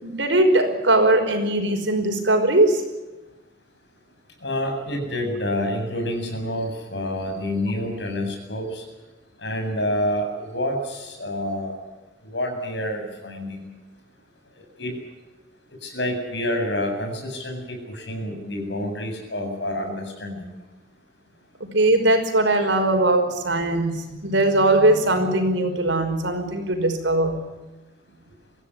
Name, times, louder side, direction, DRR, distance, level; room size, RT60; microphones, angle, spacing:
voice 1, 0.0-2.8 21.6-27.4, right 2 dB, 90° right, 5 dB, 5.4 m, -20 dB
voice 2, 4.4-8.8 9.4-11.8 12.2-13.7 14.8-14.9 15.8-20.5, left 1 dB, 75° left, 3 dB, 7.9 m, -28 dB
24.0 x 16.0 x 9.9 m, 1.1 s
head